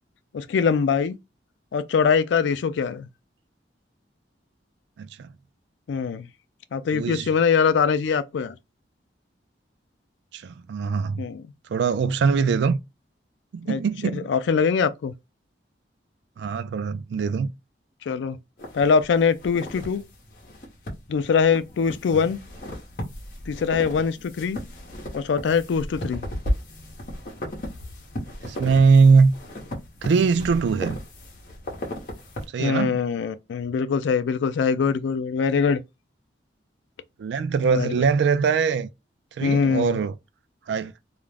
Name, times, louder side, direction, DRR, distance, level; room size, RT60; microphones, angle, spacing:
voice 1, 0.3-1.2 1.7-3.1 5.9-6.3 6.7-8.6 11.2-11.4 13.7-13.8 14.1-15.1 18.1-18.4 18.7-20.0 21.1-22.4 23.5-24.6 25.1-26.2 32.6-35.8 37.7-38.0 39.4-40.0, left 6 dB, 80° left, 0.3 m, -23 dB
voice 2, 5.0-5.3 6.9-7.3 10.3-11.3 11.7-12.8 13.5-14.3 16.4-17.5 22.1-22.2 28.4-29.3 30.0-31.0 32.5-33.0 37.2-38.9 39.4-40.1 40.7-40.9, right 5 dB, 70° right, 0.3 m, -21 dB
sound 1, 18.6-32.5, equal, 50° left, 0.8 m, -35 dB
2.4 x 2.0 x 3.2 m
head